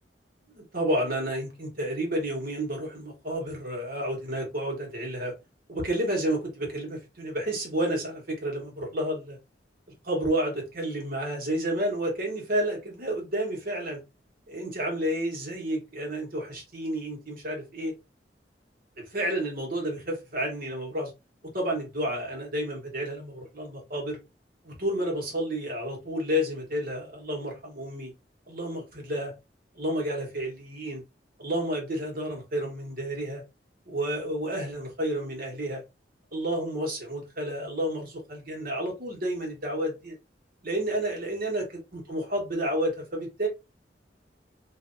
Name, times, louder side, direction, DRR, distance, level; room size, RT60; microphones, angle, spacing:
voice 1, 0.5-5.3 5.7-9.4 10.0-14.0 14.5-17.9 19.0-21.1 21.5-24.2 24.6-28.1 28.5-29.3 29.7-31.0 31.4-33.4 33.9-35.8 36.3-40.1 40.6-43.5, right 1 dB, 55° right, 1.5 m, -30 dB
3.3 x 2.7 x 2.6 m
head